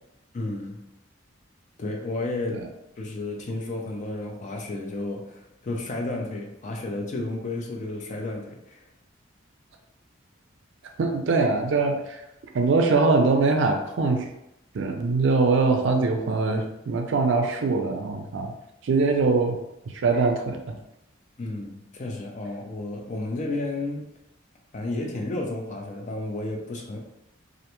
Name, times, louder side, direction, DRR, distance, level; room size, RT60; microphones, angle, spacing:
voice 1, 0.3-0.9 1.8-2.7 3.0-8.8 21.4-24.1 24.7-27.0, left 2 dB, 40° left, 1 dB, 0.4 m, -32 dB
voice 2, 11.0-12.2 12.5-14.3 14.7-18.5 18.8-19.6 20.0-20.7, right 3 dB, 70° right, 4 dB, 0.4 m, -22 dB
2.4 x 2.2 x 2.9 m, 0.86 s
head